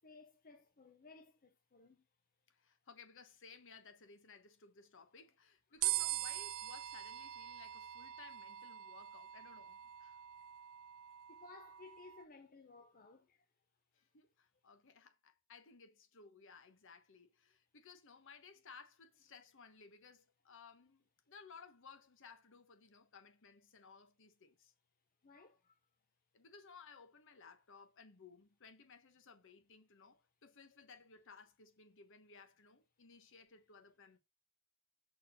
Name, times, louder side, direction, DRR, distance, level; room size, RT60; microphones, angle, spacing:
voice 1, 0.0-2.1 5.7-5.9 10.3-10.6 11.3-13.5 13.9-14.1 25.2-25.8, left 3 dB, 40° left, 0.7 m, -59 dB
voice 2, 2.5-10.2 13.9-24.7 26.3-34.2, left 5 dB, 60° left, 1.1 m, -59 dB
sound 1, 5.8-12.2, right 15 dB, 65° right, 0.3 m, -43 dB
6.0 x 4.6 x 6.5 m
head